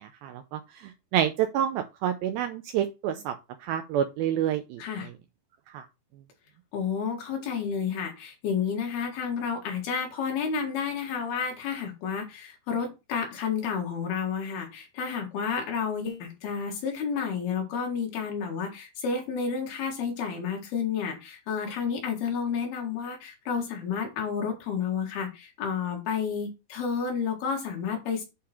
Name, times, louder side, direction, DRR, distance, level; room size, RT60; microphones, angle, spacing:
voice 1, 0.0-3.3 3.6-5.1 5.7-5.9, right 10 dB, 90° right, 2.1 m, -29 dB
voice 2, 4.8-5.1 6.7-28.2, left 6 dB, 70° left, 3.6 m, -31 dB
8.5 x 3.8 x 4.3 m
omnidirectional pair, 4.8 m